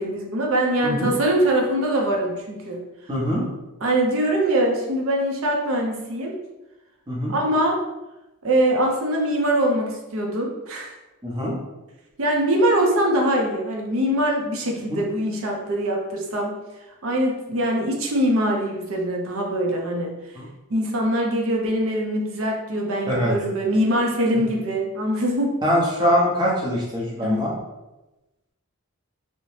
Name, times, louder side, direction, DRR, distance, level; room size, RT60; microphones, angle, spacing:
voice 1, 0.0-2.8 3.8-6.4 7.3-7.8 8.4-11.0 12.2-16.5 17.0-20.1 20.7-25.6 27.2-27.5, right 1 dB, 65° right, 0 dB, 0.5 m, -23 dB
voice 2, 3.1-3.4 7.1-7.3 11.2-11.6 14.9-15.0 20.4-20.5 23.1-23.3 25.6-27.5, equal, 20° right, -5 dB, 0.6 m, -23 dB
2.7 x 2.0 x 3.1 m, 1.0 s
head